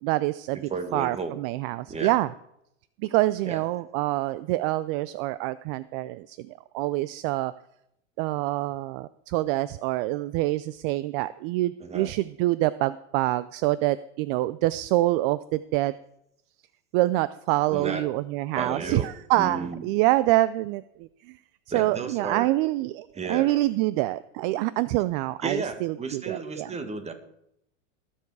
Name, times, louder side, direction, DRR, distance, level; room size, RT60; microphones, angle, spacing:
voice 1, 0.0-2.3 3.0-7.5 8.2-15.9 16.9-21.4 21.7-26.7, right 17 dB, 50° right, 17 dB, 0.5 m, -26 dB
voice 2, 0.7-1.4 1.9-2.1 3.4-3.6 11.8-12.1 17.7-18.0 18.5-19.1 19.4-19.9 21.7-22.5 23.1-23.6 25.4-27.1, right 4 dB, 15° right, 8 dB, 1.7 m, -33 dB
20.0 x 7.3 x 4.8 m, 0.77 s
hypercardioid pair, 115°, 38 cm